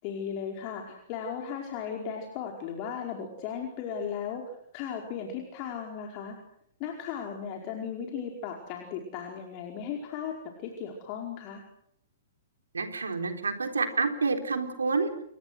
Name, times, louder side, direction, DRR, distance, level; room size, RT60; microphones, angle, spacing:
voice 1, 0.0-4.4 4.7-6.4 6.8-11.6, left 7 dB, 35° left, 1 dB, 4.8 m, -36 dB
voice 2, 12.7-15.1, right 4 dB, 75° right, 6 dB, 3.8 m, -28 dB
29.5 x 24.0 x 6.5 m, 0.71 s
figure-of-eight pair, 115°, 0 cm